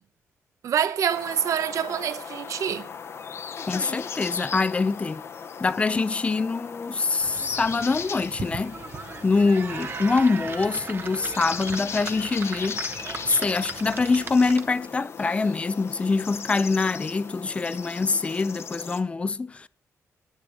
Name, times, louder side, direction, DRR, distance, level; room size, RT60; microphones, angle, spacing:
voice 1, 0.6-2.9, right 8 dB, 65° right, 0.8 m, -26 dB
sound 1, 1.1-19.0, left 6 dB, 50° left, 0.8 m, -38 dB
voice 2, 3.7-5.2 5.6-8.8 9.2-13.0 13.2-19.7, left 4 dB, 20° left, 0.5 m, -24 dB
sound 2, 7.2-14.9, right 5 dB, 40° right, 1.0 m, -38 dB
10.5 x 10.0 x 5.0 m
wide cardioid pair, 140°, 6 cm